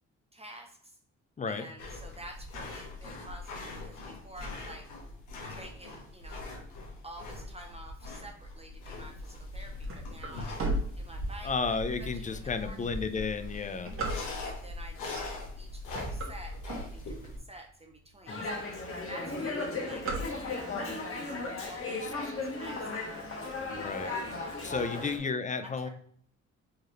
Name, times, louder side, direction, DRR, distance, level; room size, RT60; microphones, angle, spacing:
voice 1, 0.3-1.0 1.5-4.9 5.5-6.5 7.0-10.5 10.9-13.0 14.4-18.7 19.1-20.8 21.1-23.3 24.0-25.2 25.6-25.9, right 1 dB, 20° right, 3 dB, 0.6 m, -50 dB
sound 1, 1.8-17.4, left 2 dB, 90° left, 1.3 m, -41 dB
sound 2, 9.8-11.7 12.2-12.3 13.0-14.7 15.3-15.6 15.8-17.4 17.9-18.0 18.2-18.3 18.6-19.0 19.2-20.8, right 2 dB, 45° right, 1.4 m, -35 dB
voice 2, 11.4-13.9 18.3-18.5 22.0-22.1 23.7-24.1 24.6-25.9, left 4 dB, 25° left, 10 dB, 0.5 m, -33 dB
Dog, 18.3-25.2, left 3 dB, 45° left, 1.3 m, -36 dB
4.8 x 3.1 x 3.0 m, 0.62 s
cardioid pair, 90°, 30 cm